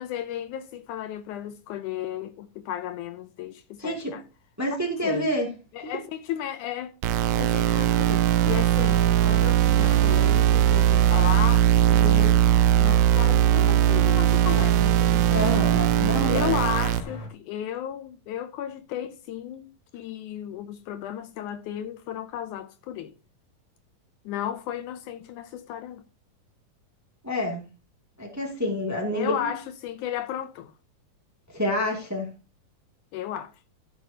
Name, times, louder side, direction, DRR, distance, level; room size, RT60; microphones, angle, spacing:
voice 1, 0.0-4.2 5.0-5.3 5.7-6.9 7.4-12.4 12.7-15.2 15.9-23.1 24.3-26.0 29.1-30.7 33.1-33.5, left 10 dB, 75° left, 2.0 m, -34 dB
voice 2, 3.8-4.1 4.6-5.5 5.8-5.9 15.2-16.5 27.2-27.6 28.2-29.3 31.5-32.3, left 1 dB, 5° right, 1.6 m, -28 dB
sound 1, 7.0-17.0, right 11 dB, 80° right, 1.7 m, -20 dB
sound 2, 7.5-17.3, left 2 dB, 55° left, 3.4 m, -42 dB
14.5 x 7.3 x 2.8 m
omnidirectional pair, 3.7 m